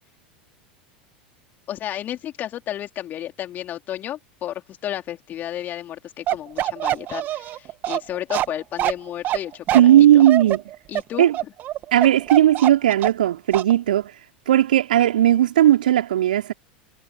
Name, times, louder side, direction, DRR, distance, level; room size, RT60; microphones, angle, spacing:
voice 1, 1.7-10.2 10.9-11.5, left 12 dB, 35° left, 4.2 m, -32 dB
Bark, 6.3-13.3 13.5-13.7, right 13 dB, 40° right, 2.7 m, -24 dB
voice 2, 9.7-10.6 11.2-11.3 11.9-14.1 14.5-16.5, right 12 dB, 70° right, 3.7 m, -16 dB
figure-of-eight pair, 80°, 5 cm